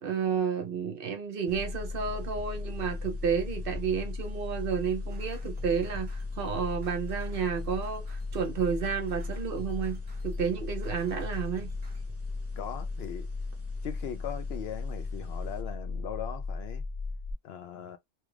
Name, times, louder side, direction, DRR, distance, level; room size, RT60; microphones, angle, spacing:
voice 1, 0.0-10.0 10.2-11.7, right 6 dB, 55° right, 0.7 m, -31 dB
sound 1, 1.5-17.3, left 3 dB, 40° left, 0.3 m, -36 dB
sound 2, 1.5-15.6, equal, 15° right, 0.5 m, -54 dB
sound 3, 5.1-12.0, right 6 dB, 35° right, 1.1 m, -55 dB
voice 2, 12.6-13.3 13.8-16.8 17.4-18.0, left 9 dB, 65° left, 0.8 m, -39 dB
3.0 x 2.4 x 3.1 m
omnidirectional pair, 1.2 m